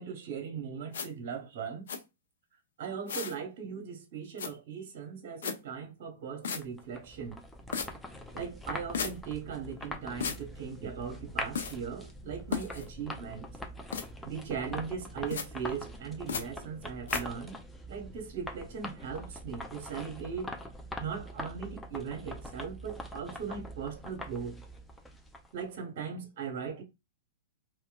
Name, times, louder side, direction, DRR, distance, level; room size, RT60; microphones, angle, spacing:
voice 1, 0.0-1.8 2.8-7.4 8.3-13.5 14.2-17.6 17.9-20.5 21.0-24.6 25.5-26.8, right 6 dB, 55° right, 0.8 m, -39 dB
sound 1, 0.9-1.1 1.9-2.0 3.1-3.4 4.4-4.5 5.4-5.6 6.4-6.6 7.7-7.9 8.9-9.1 10.2-10.4 11.5-11.7 12.5-12.8 13.9-14.0 15.3-15.5 16.3-16.4 17.1-17.2, left 6 dB, 70° left, 0.5 m, -34 dB
sound 2, 6.6-25.6, left 1 dB, 5° left, 0.4 m, -43 dB
2.9 x 2.1 x 2.3 m
hypercardioid pair, 115°, 0 cm